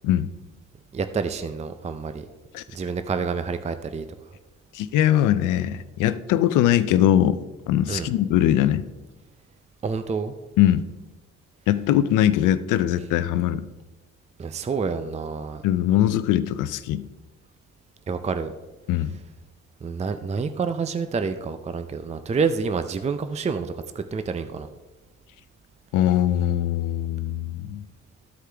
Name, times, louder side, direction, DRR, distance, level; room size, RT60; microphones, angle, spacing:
voice 1, 0.9-2.3 2.7-4.0 7.9-8.1 9.8-10.3 14.4-15.6 18.1-18.5 19.8-24.7, right 5 dB, 20° right, 10 dB, 0.5 m, -28 dB
voice 2, 4.7-7.4 7.7-8.8 10.6-10.9 11.7-13.7 15.6-17.1 18.9-19.2 25.9-27.8, left 12 dB, 90° left, 13 dB, 0.5 m, -21 dB
13.5 x 4.8 x 3.4 m, 1.1 s
cardioid pair, 90°, 30 cm